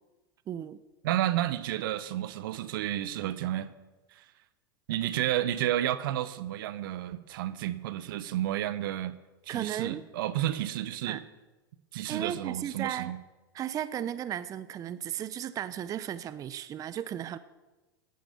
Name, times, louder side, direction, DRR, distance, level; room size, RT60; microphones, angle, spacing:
voice 1, 0.5-0.8 9.5-10.0 11.0-11.2 12.1-13.1 13.5-17.4, right 10 dB, 30° right, 0.6 m, -35 dB
voice 2, 1.0-3.7 4.1-4.2 4.9-9.2 9.5-11.2 11.9-13.2, right 13 dB, 65° right, 0.8 m, -31 dB
11.0 x 10.5 x 6.9 m
hypercardioid pair, 105°, 12 cm